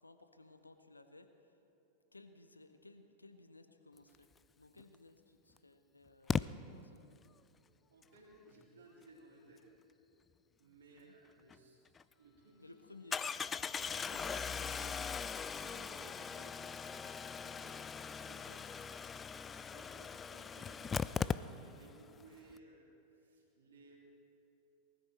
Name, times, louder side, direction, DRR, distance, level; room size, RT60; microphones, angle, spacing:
voice 1, 0.0-1.6 2.1-4.3 4.6-6.4 6.7-7.0 10.9-11.2 12.6-13.3 18.3-18.6, left 3 dB, 80° left, 9 dB, 0.8 m, -59 dB
Engine starting, 4.8-4.9 6.3-6.4 11.5-11.6 12.0-12.1 13.1-21.9 22.2-22.3 22.5-22.6, left 6 dB, 20° left, 0.3 m, -39 dB
voice 2, 7.9-9.7 10.6-11.8 12.2-12.6 13.8-15.0 15.5-18.6 19.4-24.0, right 2 dB, 65° right, -3 dB, 3.5 m, -60 dB
20.0 x 13.5 x 4.5 m, 2.9 s
figure-of-eight pair, 90°, 0 cm